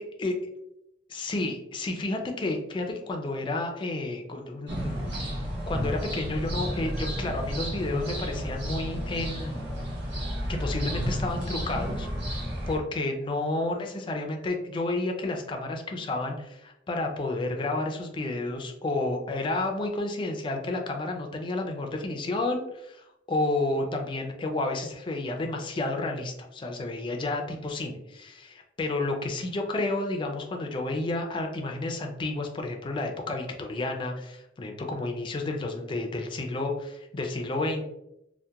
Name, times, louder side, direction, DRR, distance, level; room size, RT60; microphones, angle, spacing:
voice 1, 1.1-9.6 10.5-12.4 12.7-37.9, left 2 dB, 25° left, 3 dB, 0.3 m, -31 dB
sound 1, 4.7-12.8, equal, 70° right, 0.8 m, -32 dB
2.7 x 2.1 x 2.3 m, 0.84 s
head